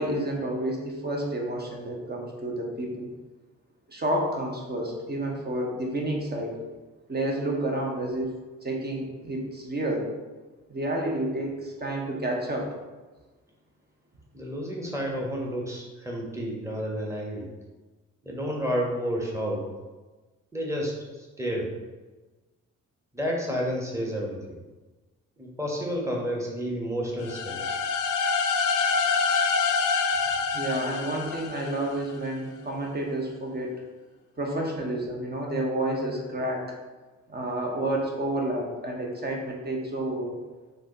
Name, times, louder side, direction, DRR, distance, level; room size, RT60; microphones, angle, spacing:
voice 1, 0.0-3.1 3.9-6.6 7.1-8.3 8.6-10.1 10.7-12.7 30.5-33.8 34.4-36.7 37.3-40.4, right 1 dB, 25° right, 0 dB, 1.1 m, -30 dB
voice 2, 14.3-17.5 18.2-19.7 20.5-21.7 23.1-24.6 25.4-27.8, equal, 5° right, -2 dB, 1.3 m, -30 dB
sound 1, 27.2-32.1, left 5 dB, 50° left, 0.6 m, -26 dB
6.4 x 2.5 x 3.0 m, 1.2 s
figure-of-eight pair, 40°, 39 cm